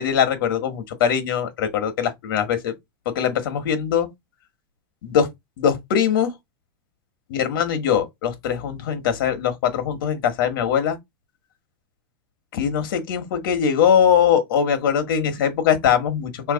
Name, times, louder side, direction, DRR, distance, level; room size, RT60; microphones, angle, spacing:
voice 1, 0.0-2.7 3.1-4.1 5.0-5.3 5.6-6.3 7.3-11.0 12.5-16.5, left 8 dB, 65° left, 1.2 m, -21 dB
3.1 x 2.8 x 3.9 m
supercardioid pair, 165°, 12 cm